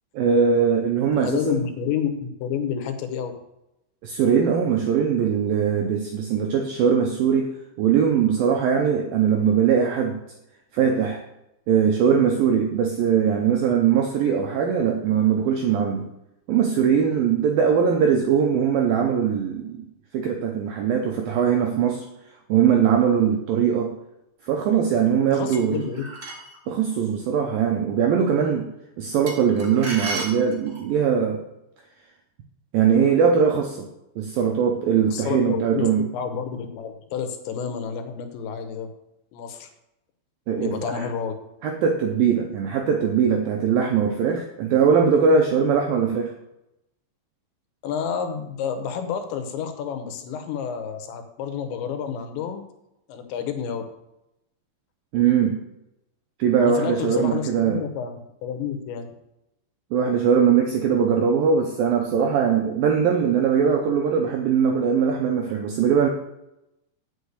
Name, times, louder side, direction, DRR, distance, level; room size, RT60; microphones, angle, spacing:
voice 1, 0.1-1.6 4.0-7.5 7.8-10.2 10.7-11.2 11.7-16.1 16.5-19.9 20.1-22.0 22.5-23.9 24.4-25.8 26.7-28.7 29.0-31.4 32.7-33.9 34.2-36.1 40.5-41.1 41.6-46.3 55.1-55.6 56.4-57.9 59.9-66.1, right 7 dB, 80° right, 3 dB, 2.1 m, -21 dB
voice 2, 1.1-3.3 25.3-26.1 35.1-35.9 36.1-38.9 39.3-39.7 40.6-41.3 47.8-52.6 53.1-53.8 56.6-58.1 58.4-59.1, left 7 dB, 80° left, 7 dB, 3.3 m, -29 dB
sound 1, 25.5-26.6 29.3-30.9, right 2 dB, 40° right, 1.9 m, -33 dB
8.4 x 6.0 x 8.1 m, 0.87 s
omnidirectional pair, 5.2 m